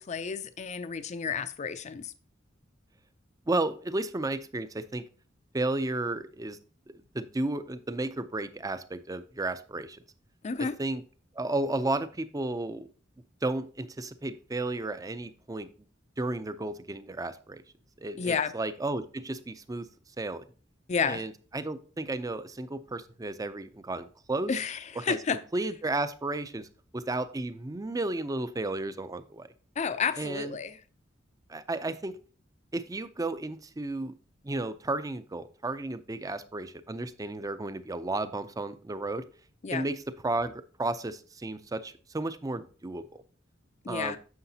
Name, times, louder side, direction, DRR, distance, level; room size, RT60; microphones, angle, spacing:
voice 1, 0.0-2.1 10.4-10.8 18.2-18.5 20.9-21.2 24.5-25.4 29.8-30.8 39.6-39.8 43.8-44.2, left 5 dB, 35° left, 0.5 m, -31 dB
voice 2, 3.5-5.0 5.5-6.6 7.1-10.0 10.8-11.0 11.4-12.9 13.4-15.7 16.2-17.6 18.0-19.9 20.2-20.4 21.1-24.5 25.0-25.2 25.5-26.7 26.9-29.5 30.2-30.6 31.5-32.2 32.7-34.1 34.4-39.2 39.7-43.2 43.9-44.2, right 2 dB, 20° right, 0.5 m, -33 dB
9.6 x 6.7 x 2.8 m
head